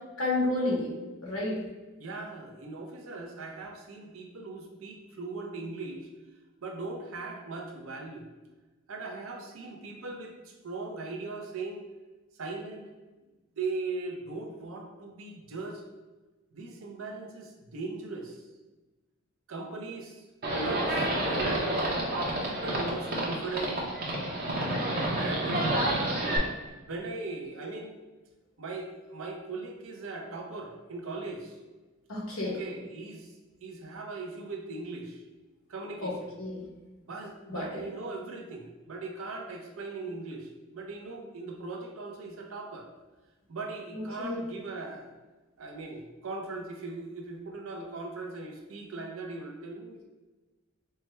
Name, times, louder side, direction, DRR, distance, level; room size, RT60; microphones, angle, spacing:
voice 1, 0.2-1.6 32.1-32.6 36.0-36.1 36.4-36.6 37.5-37.8 43.9-44.3, left 2 dB, 85° left, -3 dB, 1.0 m, -31 dB
voice 2, 2.0-6.1 6.6-8.3 8.9-11.8 12.4-12.9 13.5-15.8 16.5-18.5 19.5-21.8 22.4-23.8 25.2-25.9 26.8-28.0 28.6-31.6 32.4-33.3 33.6-35.2 35.7-36.3 37.0-42.9 43.5-45.1 45.6-50.0, right 3 dB, 85° right, 1 dB, 0.6 m, -39 dB
Livestock farm animals working animals, 20.4-26.4, right 1 dB, 50° right, 0.7 m, -29 dB
4.5 x 2.2 x 3.2 m, 1.2 s
head